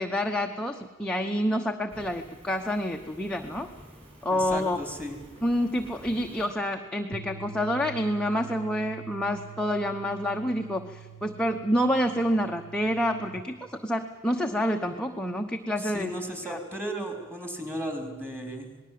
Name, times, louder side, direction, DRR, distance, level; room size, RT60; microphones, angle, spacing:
voice 1, 0.0-3.7 4.2-4.8 5.4-16.1 16.4-16.6, equal, 5° left, 2 dB, 1.0 m, -28 dB
Fire, 1.9-6.5, equal, 30° right, 7.6 m, -50 dB
voice 2, 4.3-5.2 15.8-18.8, right 1 dB, 10° right, 4 dB, 3.9 m, -35 dB
sound 1, 7.1-13.4, right 6 dB, 70° right, 1.8 m, -45 dB
27.5 x 19.5 x 7.7 m, 1.2 s
head